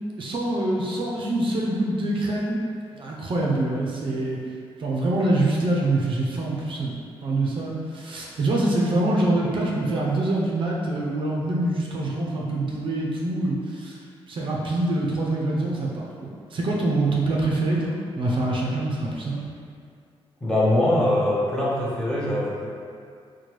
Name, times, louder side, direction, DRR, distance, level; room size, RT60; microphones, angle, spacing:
voice 1, 0.2-2.6 2.9-4.4 4.8-7.0 7.2-14.0 14.3-19.4, right 2 dB, 55° right, -4 dB, 0.6 m, -25 dB
voice 2, 20.4-22.7, left 1 dB, 5° left, -7 dB, 0.8 m, -22 dB
4.4 x 2.2 x 3.0 m, 2.3 s
cardioid pair, 115°, 10 cm